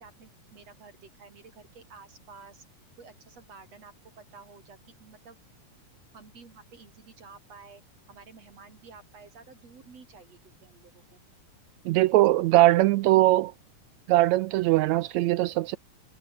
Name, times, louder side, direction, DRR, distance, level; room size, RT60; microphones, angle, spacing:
voice 1, 0.0-2.6 3.0-5.4 6.1-7.8 8.1-11.2, right 5 dB, 55° right, 4.3 m, -51 dB
voice 2, 11.8-13.5 14.1-15.8, right 16 dB, 80° right, 1.6 m, -21 dB
omnidirectional pair, 3.6 m